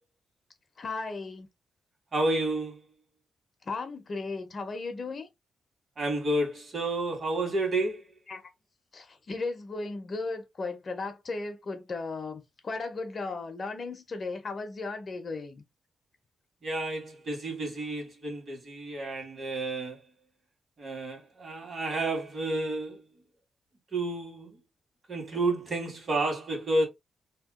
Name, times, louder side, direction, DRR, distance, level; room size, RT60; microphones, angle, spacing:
voice 1, 0.8-1.5 3.6-5.3 8.3-8.4 8.9-15.6, left 3 dB, 40° left, 0.7 m, -36 dB
voice 2, 2.1-2.8 6.0-8.0 16.6-20.0 20.8-23.0 23.9-24.6 25.1-26.9, right 2 dB, 45° right, 1.6 m, -30 dB
2.8 x 2.2 x 3.6 m
wide cardioid pair, 125°, 0 cm